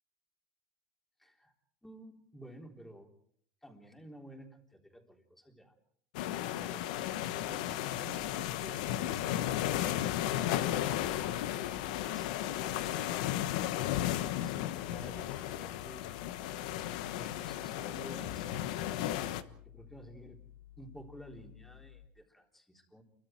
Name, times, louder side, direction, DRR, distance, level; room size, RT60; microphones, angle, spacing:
voice 1, 1.2-1.5 1.8-3.1 3.6-5.7 6.2-7.0 7.2-9.2 9.5-13.1 13.4-16.2 17.1-19.0 19.3-20.4 20.8-23.0, equal, 5° left, 2 dB, 3.9 m, -53 dB
sound 1, 6.1-19.4, left 12 dB, 80° left, 1.2 m, -34 dB
sound 2, 8.1-22.1, left 13 dB, 55° left, 3.0 m, -55 dB
sound 3, 14.8-15.8, left 5 dB, 35° left, 7.2 m, -55 dB
29.5 x 24.0 x 4.6 m, 0.64 s
supercardioid pair, 130°, 4 cm